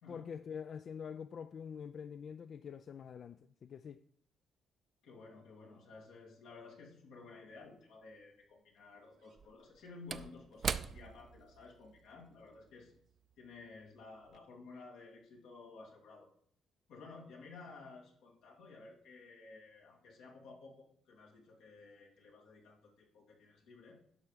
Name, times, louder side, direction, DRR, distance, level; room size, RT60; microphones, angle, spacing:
voice 1, 0.1-4.0, left 7 dB, 55° left, 0.3 m, -45 dB
voice 2, 5.0-12.9 13.4-16.3 16.9-24.0, left 3 dB, 90° left, 2.4 m, -54 dB
Slam / Wood, 7.6-7.7 9.2-13.9 14.2-14.4, right 6 dB, 50° right, 0.5 m, -43 dB
10.5 x 5.9 x 4.9 m
cardioid pair, 90°, 0 cm